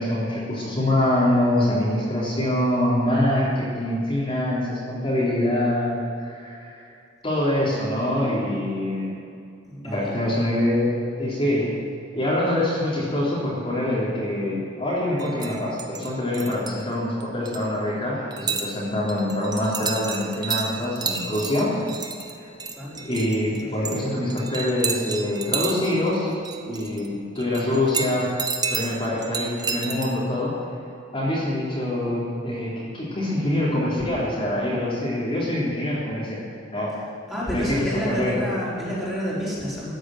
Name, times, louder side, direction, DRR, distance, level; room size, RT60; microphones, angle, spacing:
voice 1, 0.0-6.9 7.2-9.1 9.8-10.9 11.2-11.7 12.2-21.7 22.4-22.6 23.0-26.4 26.7-28.3 28.7-30.8 31.1-36.4 36.7-36.9 37.5-38.4, left 1 dB, 30° left, -8 dB, 3.6 m, -25 dB
voice 2, 9.6-10.1 22.7-23.0 23.5-23.9 37.3-39.9, equal, ahead, -9 dB, 4.9 m, -29 dB
sound 1, 15.2-16.8 17.2-17.6 18.3-18.7 19.1-24.0 24.3-27.1 27.4-30.1, right 5 dB, 20° right, 1.1 m, -31 dB
14.5 x 9.8 x 9.2 m, 2.5 s
head